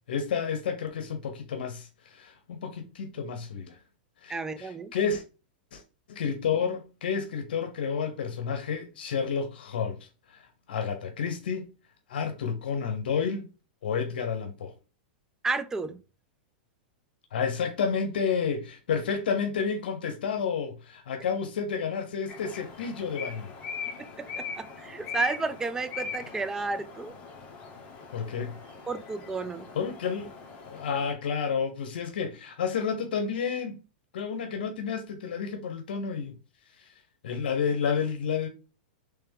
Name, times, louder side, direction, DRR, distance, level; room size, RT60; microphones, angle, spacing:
voice 1, 0.1-3.8 4.2-5.2 5.7-5.8 6.1-10.0 10.3-11.7 12.1-13.5 13.8-14.7 17.3-23.5 28.1-28.5 29.8-30.3 30.7-33.8 34.1-36.3 37.2-38.5, left 6 dB, 80° left, 0.7 m, -30 dB
voice 2, 4.3-4.9 15.4-16.0 24.2-27.1 28.9-29.7, right 3 dB, 10° right, 0.3 m, -32 dB
sound 1, 22.3-31.1, left 6 dB, 25° left, 1.1 m, -41 dB
3.3 x 3.3 x 3.4 m
hypercardioid pair, 140°, 5 cm